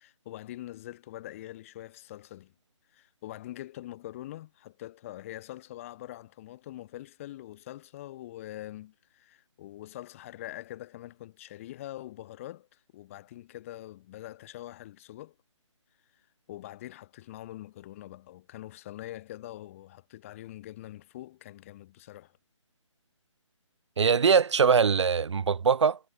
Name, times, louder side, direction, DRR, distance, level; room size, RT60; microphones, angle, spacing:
voice 1, 0.0-2.5 2.9-15.3 16.5-22.3, left 14 dB, 25° left, 1.7 m, -44 dB
voice 2, 24.0-26.0, right 6 dB, 65° right, 0.7 m, -22 dB
figure-of-eight pair, 150°, 16 cm